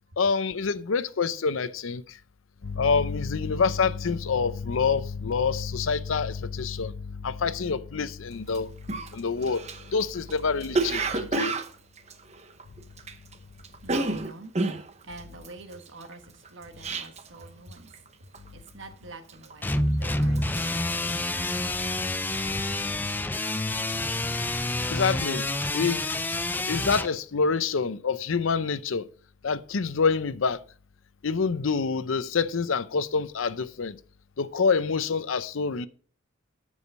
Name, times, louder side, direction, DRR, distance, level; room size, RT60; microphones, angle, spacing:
voice 1, 0.2-2.0 2.6-6.9 7.2-8.7 9.1-9.6 9.9-11.1 11.3-11.5 24.9-25.5 25.7-26.0 26.7-29.0 29.4-30.6 31.2-34.0 34.4-35.9, left 5 dB, 80° left, 0.6 m, -26 dB
Cough, 8.5-8.6 8.9-13.3 13.6-17.4 17.7-18.1 18.3-18.8 19.3-19.9 20.2-21.9 22.2-22.5, right 3 dB, 35° right, 0.8 m, -31 dB
voice 2, 13.6-14.7 15.0-17.9 18.2-22.2, right 2 dB, 65° right, 1.2 m, -47 dB
sound 1, 19.6-27.1, left 2 dB, 10° left, 0.4 m, -28 dB
13.5 x 4.9 x 5.4 m
head